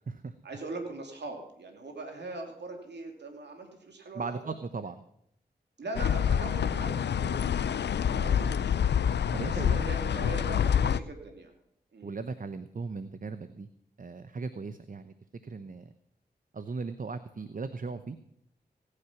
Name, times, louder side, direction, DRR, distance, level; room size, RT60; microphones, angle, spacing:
voice 1, 0.4-4.4 5.8-7.4 8.1-8.7 9.4-11.5 11.9-12.1, right 3 dB, 75° right, 3 dB, 2.6 m, -41 dB
voice 2, 4.1-5.0 8.1-8.7 9.3-10.4 12.0-13.7 14.0-15.1 15.4-15.9 16.5-18.2, right 4 dB, 50° right, 11 dB, 0.8 m, -38 dB
sound 1, 5.9-11.0, left 8 dB, 75° left, 0.5 m, -27 dB
17.0 x 9.9 x 5.9 m, 0.73 s
cardioid pair, 45°, 18 cm